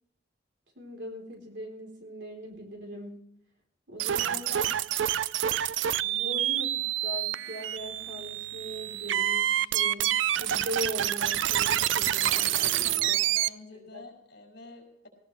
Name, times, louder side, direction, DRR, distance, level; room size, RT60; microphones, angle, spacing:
voice 1, 0.8-3.2 3.9-4.5 6.0-10.1 10.4-13.2 13.9-14.0, equal, 65° right, 2 dB, 3.9 m, -40 dB
sound 1, 4.0-13.5, right 12 dB, 85° right, 0.4 m, -27 dB
voice 2, 4.1-4.8 12.8-15.1, left 2 dB, 60° left, 1 dB, 5.8 m, -45 dB
18.5 x 16.5 x 3.3 m, 0.74 s
head